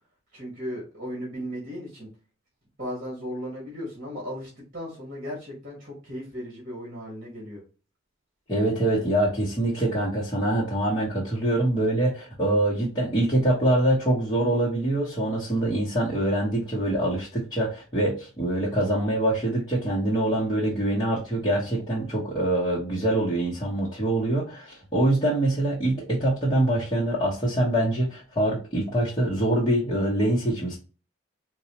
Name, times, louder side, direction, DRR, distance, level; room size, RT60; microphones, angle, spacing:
voice 1, 0.3-2.1 2.8-7.6, equal, 45° right, -3 dB, 1.6 m, -36 dB
voice 2, 8.5-30.8, right 1 dB, 20° left, -8 dB, 0.9 m, -24 dB
4.0 x 2.3 x 2.9 m, 0.35 s
head